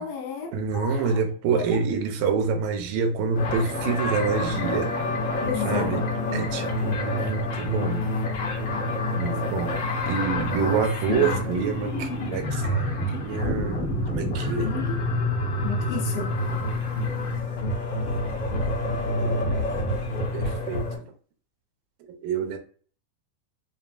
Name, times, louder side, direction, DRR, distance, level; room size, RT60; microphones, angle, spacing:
voice 1, 0.0-1.2 1.5-1.8 5.4-6.4 11.1-11.4 14.6-15.1 15.6-16.3, left 8 dB, 85° left, 2.7 m, -32 dB
voice 2, 0.5-4.9 5.6-6.0 6.3-8.1 9.2-9.8 10.1-14.7 19.1-19.7 20.3-21.0 22.1-22.6, right 5 dB, 85° right, 2.4 m, -27 dB
sound 1, 3.3-21.0, left 2 dB, 70° left, 1.2 m, -27 dB
7.1 x 2.4 x 2.4 m
omnidirectional pair, 3.9 m